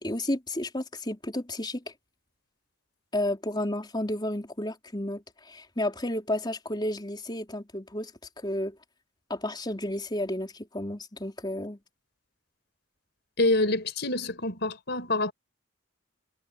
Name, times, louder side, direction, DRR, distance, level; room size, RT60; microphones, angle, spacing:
voice 1, 0.0-1.9 3.1-8.1 8.4-8.8 9.3-11.8, left 1 dB, 20° left, 4.3 m, -32 dB
voice 2, 13.4-15.3, left 2 dB, 55° left, 5.6 m, -26 dB
head